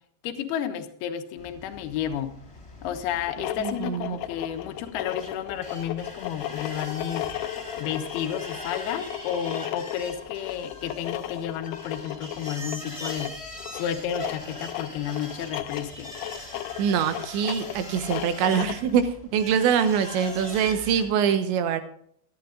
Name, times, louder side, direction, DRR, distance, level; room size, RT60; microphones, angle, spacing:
voice 1, 0.2-2.3 2.8-7.3 7.8-13.3 13.7-16.1, left 9 dB, 70° left, 6 dB, 2.8 m, -32 dB
sound 1, 1.4-21.0, left 1 dB, 5° left, 3.0 m, -42 dB
sound 2, 3.3-18.9, left 14 dB, 90° left, 3.2 m, -35 dB
voice 2, 3.6-4.2 16.8-21.8, right 7 dB, 75° right, 9 dB, 3.3 m, -24 dB
27.5 x 9.8 x 2.5 m, 0.64 s
omnidirectional pair, 5.3 m